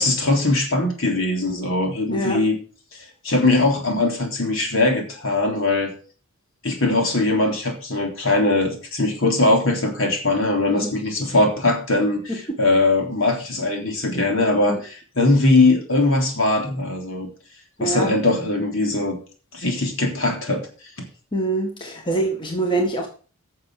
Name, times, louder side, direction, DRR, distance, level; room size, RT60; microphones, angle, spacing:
voice 1, 0.0-2.6 3.2-5.9 6.6-17.3 17.8-19.2 19.5-20.7, left 2 dB, 65° left, 2 dB, 3.5 m, -20 dB
voice 2, 17.8-18.1 21.3-23.1, right 2 dB, 20° left, 2 dB, 1.7 m, -24 dB
11.0 x 6.9 x 6.5 m, 0.39 s
head